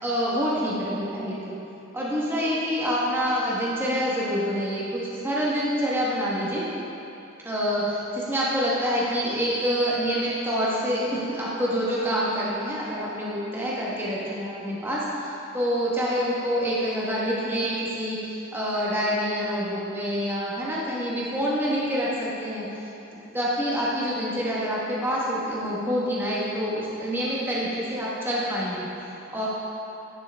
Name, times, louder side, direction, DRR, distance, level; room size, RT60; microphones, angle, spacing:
voice 1, 0.0-1.6 1.9-6.6 7.4-18.2 18.5-22.7 23.3-28.9 29.3-29.5, equal, 10° right, -7 dB, 1.1 m, -26 dB
10.5 x 6.2 x 3.4 m, 2.8 s
head